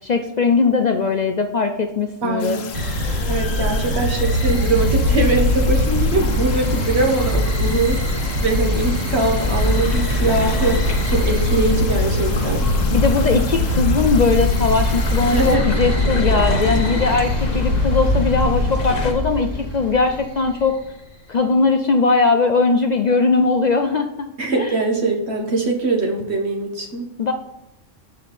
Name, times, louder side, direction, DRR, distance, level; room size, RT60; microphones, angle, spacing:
voice 1, 0.0-2.6 12.9-20.7 21.3-24.3 24.6-24.7 27.2-27.3, left 4 dB, 60° left, 6 dB, 0.4 m, -19 dB
voice 2, 2.2-2.7 3.3-12.7 15.3-15.6 24.4-27.1, right 3 dB, 55° right, 2 dB, 1.4 m, -22 dB
sound 1, 2.4-15.6, left 6 dB, 80° left, 1.2 m, -35 dB
sound 2, 2.7-20.7, left 1 dB, 25° right, 1.8 m, -22 dB
sound 3, 6.1-19.1, left 2 dB, 35° left, 0.9 m, -25 dB
7.1 x 5.2 x 4.2 m, 0.86 s
omnidirectional pair, 1.3 m